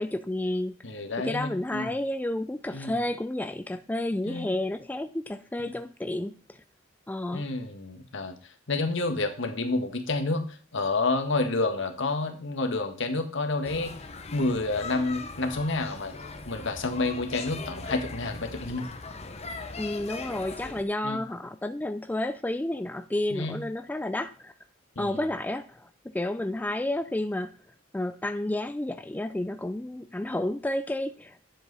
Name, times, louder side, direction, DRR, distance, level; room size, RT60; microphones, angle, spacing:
voice 1, 0.0-6.3 7.1-7.4 19.8-24.5 25.0-25.9 26.1-27.5 27.9-31.5, left 1 dB, 10° left, 0.3 m, -31 dB
voice 2, 0.8-1.9 2.7-2.9 4.2-4.5 5.6-5.7 7.3-14.0 14.3-16.1 16.4-18.9 21.0-21.2 23.3-23.6 24.9-25.3, left 2 dB, 65° left, 1.5 m, -29 dB
sound 1, 13.6-20.8, left 3 dB, 35° left, 1.0 m, -40 dB
10.5 x 7.5 x 4.0 m
head